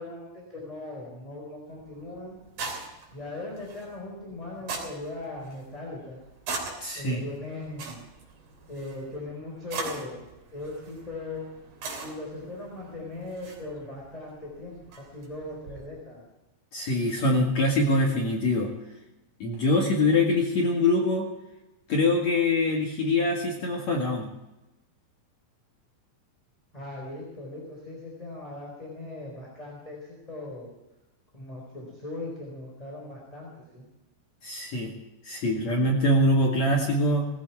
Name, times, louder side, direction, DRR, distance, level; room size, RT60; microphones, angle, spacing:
voice 1, 0.0-2.4 3.1-6.2 7.0-8.0 8.7-10.3 10.5-11.5 12.0-16.3 26.7-30.7 31.3-33.9, left 2 dB, 10° left, -3 dB, 3.7 m, -39 dB
sound 1, 1.7-15.9, right 4 dB, 60° right, 4.8 m, -41 dB
voice 2, 6.8-7.2 16.7-18.7 19.4-21.3 21.9-24.3 34.4-34.9 35.2-37.3, left 1 dB, 50° left, -1 dB, 2.6 m, -24 dB
19.5 x 15.0 x 4.7 m, 0.99 s
omnidirectional pair, 5.0 m